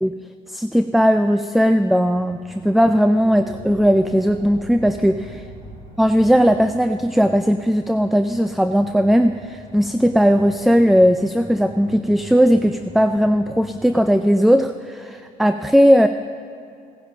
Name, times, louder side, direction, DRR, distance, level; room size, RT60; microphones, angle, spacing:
voice 1, 0.5-5.4 6.0-16.1, equal, ahead, 9 dB, 0.3 m, -17 dB
sound 1, 2.0-14.2, right 1 dB, 45° right, 2.7 m, -44 dB
sound 2, 3.2-9.5, right 2 dB, 25° right, 3.1 m, -43 dB
17.5 x 10.5 x 3.9 m, 2.5 s
cardioid pair, 110°, 17 cm